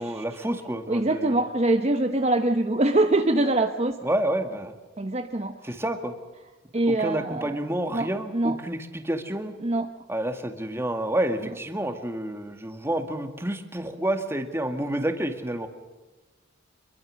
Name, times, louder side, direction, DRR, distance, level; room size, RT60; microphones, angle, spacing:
voice 1, 0.0-1.4 4.0-4.7 5.6-6.2 6.9-9.6 10.1-15.7, right 1 dB, 10° right, 6 dB, 2.0 m, -29 dB
voice 2, 0.9-4.0 5.0-5.7 6.7-7.6 7.9-8.6 9.6-9.9 11.4-11.5, right 2 dB, 30° right, 6 dB, 0.9 m, -24 dB
26.0 x 22.5 x 6.5 m, 1.2 s
head